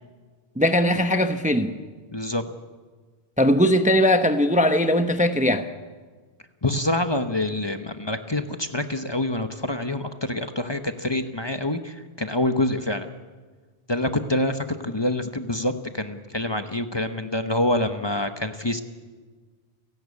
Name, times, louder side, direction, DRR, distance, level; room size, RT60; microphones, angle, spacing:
voice 1, 0.6-1.7 3.4-5.7, left 1 dB, 10° right, 8 dB, 0.8 m, -20 dB
voice 2, 2.1-2.4 6.6-13.1 13.9-18.8, left 1 dB, 25° left, 8 dB, 1.0 m, -26 dB
30.0 x 11.5 x 8.4 m, 1.4 s
omnidirectional pair, 1.1 m